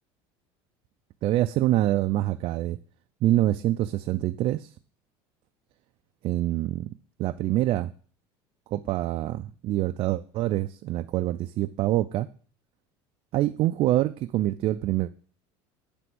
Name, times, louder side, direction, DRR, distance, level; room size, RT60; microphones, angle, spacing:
voice 1, 1.2-2.8 3.2-4.7 6.2-6.9 7.2-7.9 8.7-12.3 13.3-15.1, right 14 dB, 50° right, 0.3 m, -25 dB
9.3 x 3.4 x 6.0 m
supercardioid pair, 125°, 12 cm